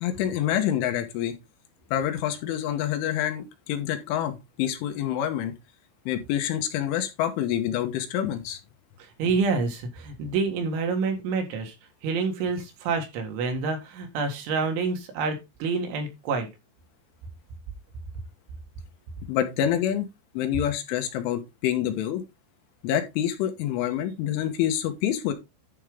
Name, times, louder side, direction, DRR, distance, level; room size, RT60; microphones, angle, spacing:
voice 1, 0.0-1.4 1.9-5.5 6.1-8.6 19.3-20.1 20.4-22.2 22.8-25.3, left 10 dB, 75° left, 3.6 m, -27 dB
voice 2, 9.0-11.7 12.0-16.5, right 4 dB, 70° right, 4.0 m, -28 dB
11.0 x 5.5 x 3.7 m
omnidirectional pair, 5.8 m